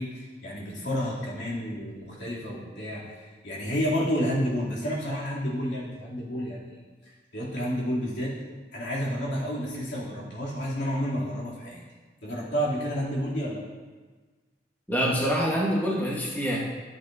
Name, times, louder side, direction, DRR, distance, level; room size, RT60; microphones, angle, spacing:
voice 1, 0.0-6.8 7.3-8.3 8.7-11.8 12.2-13.6, equal, 85° left, -6 dB, 2.9 m, -30 dB
voice 2, 14.9-16.6, equal, 10° left, -5 dB, 1.3 m, -25 dB
12.5 x 8.2 x 2.7 m, 1.4 s
head